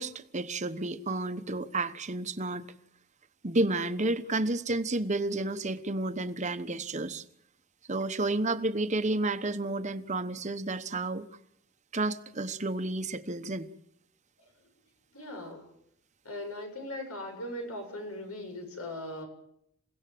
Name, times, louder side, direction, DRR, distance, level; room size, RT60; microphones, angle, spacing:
voice 1, 0.0-2.7 3.4-7.2 7.9-11.3 11.9-13.7, right 2 dB, 35° right, 1.0 m, -31 dB
voice 2, 15.1-15.7 16.2-19.3, left 1 dB, 85° left, 7.6 m, -39 dB
28.5 x 17.0 x 7.7 m
head